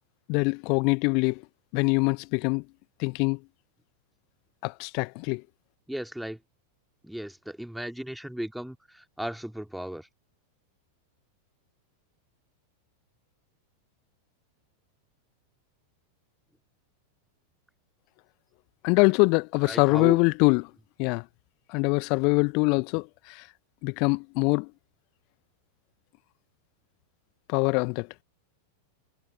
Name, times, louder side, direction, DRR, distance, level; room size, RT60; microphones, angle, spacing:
voice 1, 0.3-1.4 1.7-2.6 3.0-3.4 4.6-5.4 18.8-20.7 21.0-21.2 21.7-23.5 23.8-24.7 27.5-28.1, left 33 dB, 45° left, 1.0 m, -24 dB
voice 2, 5.9-6.4 7.0-10.1 19.7-20.2, right 1 dB, ahead, 2.5 m, -36 dB
figure-of-eight pair, 90°, 0 cm